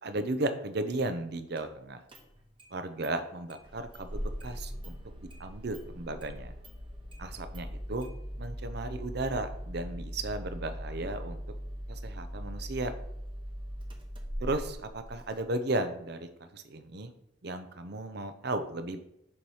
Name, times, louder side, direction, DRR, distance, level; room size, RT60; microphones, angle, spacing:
voice 1, 0.0-2.0 2.7-5.0 5.4-6.5 7.2-8.1 8.4-11.4 11.9-12.9 14.4-17.1 17.4-19.0, right 2 dB, 60° right, 9 dB, 0.7 m, -35 dB
Engine starting, 1.6-1.7 2.1-2.7 3.0-3.1 3.5-15.4, equal, 25° right, 1.0 m, -40 dB
7.1 x 3.2 x 5.6 m, 0.81 s
head